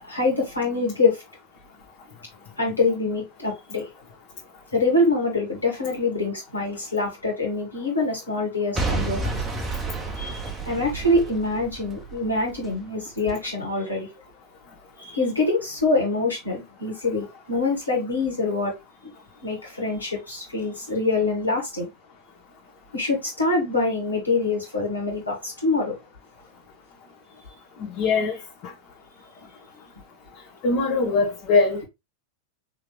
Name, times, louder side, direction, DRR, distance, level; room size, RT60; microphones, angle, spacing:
voice 1, 0.0-1.2 2.6-3.9 4.7-9.3 10.2-14.1 15.0-18.7 19.4-21.8 22.9-25.9, left 3 dB, 85° left, 2.1 m, -25 dB
Boom / Shatter / Crushing, 8.7-12.8 13.3-13.4, right 3 dB, 15° right, 0.7 m, -30 dB
voice 2, 27.8-28.4 28.6-28.7 30.6-31.8, left 3 dB, 40° left, 1.1 m, -21 dB
3.9 x 3.1 x 3.1 m
figure-of-eight pair, 90°, 0 cm